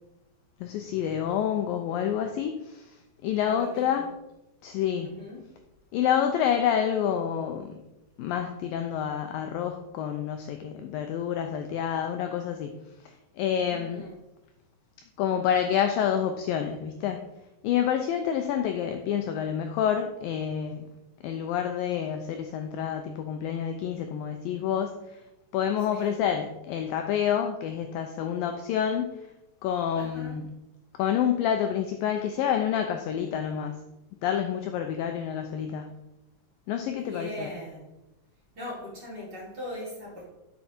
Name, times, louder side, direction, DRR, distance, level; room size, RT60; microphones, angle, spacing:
voice 1, 0.6-3.0 3.2-4.1 4.6-5.1 5.9-7.7 8.2-12.8 13.4-14.1 15.2-17.2 17.6-20.9 21.2-25.2 25.5-29.1 29.6-30.4 31.0-33.8 34.2-35.9 36.7-37.5, left 9 dB, 85° left, 6 dB, 2.0 m, -28 dB
voice 2, 3.4-4.1 5.0-5.4 13.7-14.2 25.9-26.2 30.0-30.4 37.0-37.9 38.6-40.2, left 1 dB, 25° right, -6 dB, 3.7 m, -40 dB
10.5 x 6.9 x 4.4 m, 0.94 s
omnidirectional pair, 4.8 m